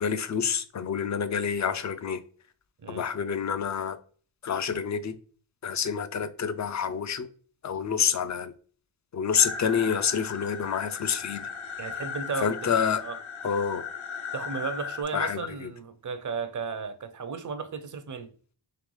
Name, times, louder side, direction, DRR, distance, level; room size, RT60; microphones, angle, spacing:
voice 1, 0.0-2.2 2.9-4.0 4.4-5.2 5.6-7.3 7.6-8.5 9.1-11.5 12.4-13.0 13.4-13.8 15.1-15.7, left 7 dB, 40° left, 0.4 m, -28 dB
sound 1, 9.4-15.0, left 6 dB, 85° left, 0.7 m, -37 dB
voice 2, 11.8-12.7 13.0-13.2 14.3-18.3, right 5 dB, 40° right, 0.6 m, -34 dB
3.8 x 3.2 x 3.1 m
wide cardioid pair, 95°, 47 cm